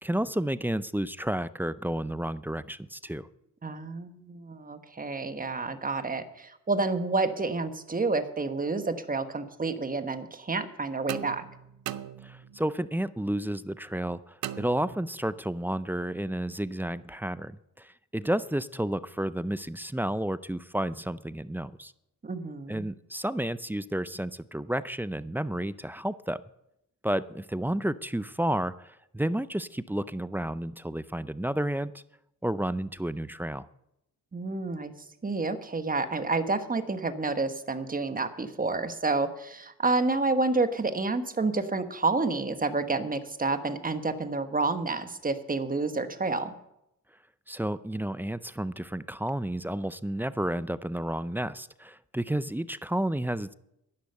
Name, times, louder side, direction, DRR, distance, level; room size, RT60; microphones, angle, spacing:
voice 1, 0.0-3.3 12.2-21.9 22.7-26.4 27.0-31.9 32.4-33.7 47.5-53.5, right 1 dB, 5° right, 16 dB, 0.5 m, -31 dB
voice 2, 3.6-11.4 22.2-22.8 34.3-34.9 35.2-46.5, right 3 dB, 25° right, 9 dB, 1.3 m, -29 dB
sound 1, 11.1-12.7 14.4-15.4, right 12 dB, 85° right, 0.7 m, -39 dB
11.5 x 10.5 x 6.7 m, 0.81 s
cardioid pair, 75°, 35 cm